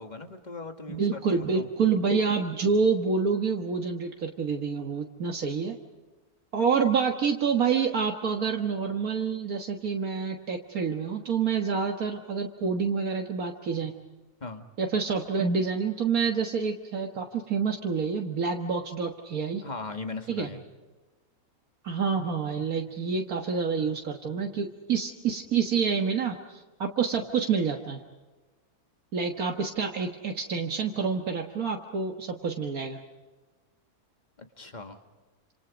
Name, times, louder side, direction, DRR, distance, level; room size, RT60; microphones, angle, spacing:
voice 1, 0.0-1.7 14.4-14.6 19.6-20.6 34.4-35.0, left 3 dB, 30° left, 6 dB, 2.0 m, -39 dB
voice 2, 0.9-5.8 6.5-13.9 14.8-19.6 20.3-20.5 21.8-28.0 29.1-33.0, right 5 dB, 70° right, 3 dB, 1.9 m, -27 dB
29.0 x 27.0 x 5.1 m, 1.2 s
omnidirectional pair, 1.6 m